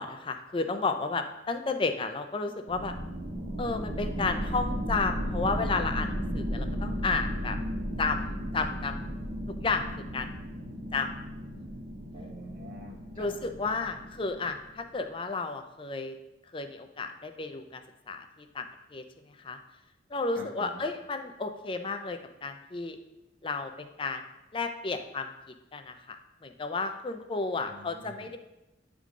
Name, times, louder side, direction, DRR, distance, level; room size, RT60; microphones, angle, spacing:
voice 1, 0.0-2.9 3.6-7.6 8.0-9.0 9.5-9.9 10.1-10.3 10.9-11.1 13.2-16.2 16.5-17.8 18.1-19.6 20.1-23.0 23.4-24.2 24.5-25.3 25.7-26.2 26.4-28.4, left 4 dB, 30° left, 7 dB, 0.4 m, -32 dB
sound 1, 2.7-14.9, equal, 90° right, 1.8 m, -35 dB
voice 2, 12.1-13.6 20.4-20.8 27.6-28.3, right 1 dB, 45° right, -2 dB, 1.1 m, -46 dB
9.4 x 3.7 x 3.6 m, 0.97 s
head